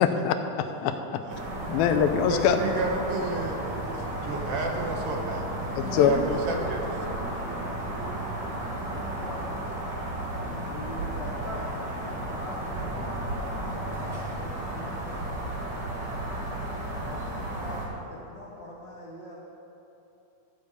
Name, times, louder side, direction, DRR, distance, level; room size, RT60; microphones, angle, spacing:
voice 1, 0.0-1.2 1.7-2.6 5.8-6.1, left 9 dB, 90° left, 7 dB, 2.5 m, -23 dB
sound 1, 1.3-17.9, right 1 dB, 40° right, 1.7 m, -33 dB
voice 2, 2.2-5.5 5.9-6.8, right 3 dB, 70° right, 1 dB, 2.3 m, -32 dB
voice 3, 5.8-9.9 10.5-15.4 17.0-19.4, left 1 dB, 60° left, -7 dB, 1.2 m, -42 dB
12.5 x 5.2 x 8.2 m, 2.9 s
omnidirectional pair, 4.2 m